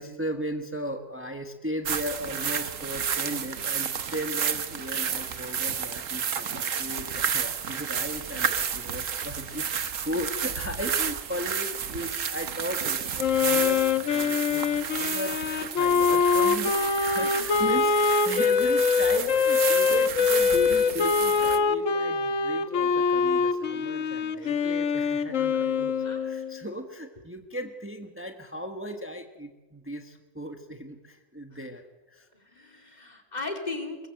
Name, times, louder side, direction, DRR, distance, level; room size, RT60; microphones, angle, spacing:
voice 1, 0.0-26.0 26.2-32.3, equal, 10° right, 5 dB, 1.4 m, -36 dB
sound 1, 1.8-21.6, right 7 dB, 85° right, 1.5 m, -31 dB
Wind instrument woodwind instrument, 13.2-26.6, left 5 dB, 85° left, 1.4 m, -24 dB
voice 2, 32.3-34.1, left 3 dB, 35° left, 5 dB, 2.8 m, -38 dB
23.0 x 20.5 x 7.8 m, 1.2 s
omnidirectional pair, 1.3 m